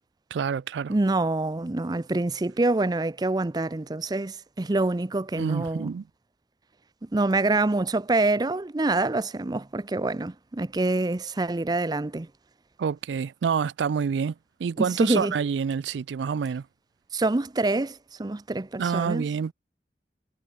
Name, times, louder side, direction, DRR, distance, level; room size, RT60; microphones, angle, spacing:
voice 1, 0.3-0.9 5.4-6.0 12.8-14.3 14.6-16.6 18.8-19.5, right 6 dB, 85° right, 0.4 m, -27 dB
voice 2, 0.9-5.9 7.0-12.3 14.8-15.3 17.1-19.2, right 2 dB, 25° right, 0.5 m, -26 dB
head